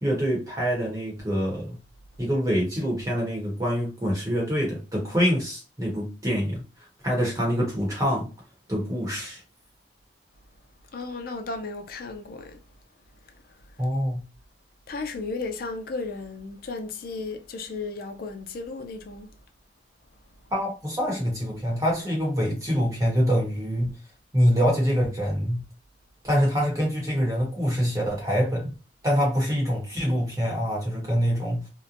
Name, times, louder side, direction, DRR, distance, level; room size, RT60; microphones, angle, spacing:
voice 1, 0.0-1.8 2.2-6.6 7.0-8.3 8.7-9.4 13.8-14.2 20.5-23.9 24.3-25.6 26.2-28.7 29.0-31.7, equal, 15° right, 0.9 m, -25 dB
voice 2, 10.9-12.6 14.9-19.3, left 3 dB, 50° left, 0.4 m, -34 dB
2.8 x 2.1 x 2.5 m
head